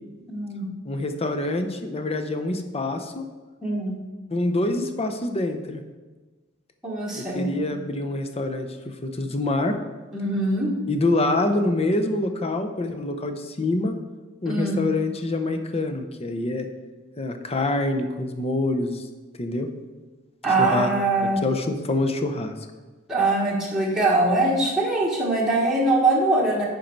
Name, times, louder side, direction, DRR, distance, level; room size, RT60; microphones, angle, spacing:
voice 1, 0.3-0.7 3.6-4.0 6.8-7.6 10.1-10.7 14.4-14.8 20.4-21.4 23.1-26.7, right 2 dB, ahead, -5 dB, 1.4 m, -22 dB
voice 2, 0.9-3.2 4.3-5.8 7.2-9.7 10.9-13.9 14.4-16.7 17.2-19.0 19.4-19.7 20.6-20.9 21.4-22.5, left 2 dB, 30° left, 6 dB, 0.7 m, -26 dB
9.2 x 5.3 x 4.5 m, 1.3 s
head